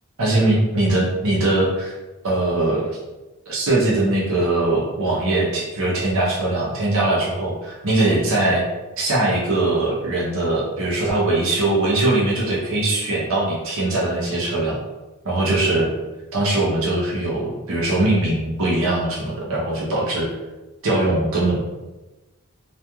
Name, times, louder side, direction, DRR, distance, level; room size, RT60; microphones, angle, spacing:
voice 1, 0.2-2.0 2.2-3.0 3.5-8.6 9.0-14.8 15.2-15.9 16.3-20.3 20.8-21.6, right 2 dB, 65° right, -5 dB, 0.7 m, -21 dB
2.9 x 2.4 x 2.2 m, 1.1 s
head